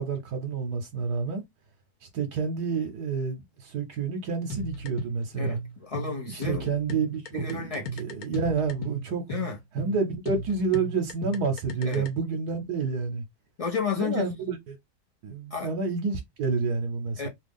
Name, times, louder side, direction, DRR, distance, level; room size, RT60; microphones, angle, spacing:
voice 1, 0.0-1.4 2.1-5.6 6.3-9.2 9.7-13.2 14.0-14.8 15.2-17.3, right 5 dB, 80° right, 1.2 m, -29 dB
sound 1, 4.5-12.1, right 2 dB, 70° left, 1.3 m, -35 dB
voice 2, 5.3-6.7 7.3-7.9 9.3-9.6 11.8-12.1 13.6-14.2 15.5-15.7 17.2-17.3, left 6 dB, 40° left, 0.5 m, -31 dB
3.0 x 2.3 x 3.5 m
omnidirectional pair, 1.7 m